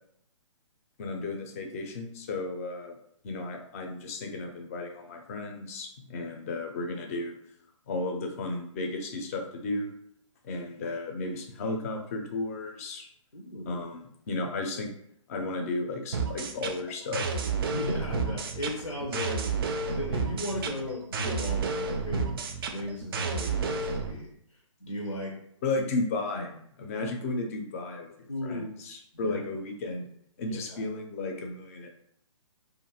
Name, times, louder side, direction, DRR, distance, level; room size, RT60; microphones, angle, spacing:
voice 1, 1.0-2.9 3.2-7.3 7.9-9.9 10.4-13.1 13.7-14.0 14.3-14.9 15.3-17.4 25.6-30.1 30.4-31.9, left 2 dB, 25° left, 3 dB, 0.4 m, -34 dB
voice 2, 13.3-13.9 17.6-19.5 19.9-22.3 22.7-24.3 24.8-25.4 28.3-28.7 29.1-29.4 30.5-30.9, left 1 dB, 90° left, -1 dB, 0.7 m, -36 dB
sound 1, 16.1-24.1, right 4 dB, 45° right, 0.4 m, -31 dB
2.5 x 2.4 x 2.9 m, 0.69 s
figure-of-eight pair, 130°, 17 cm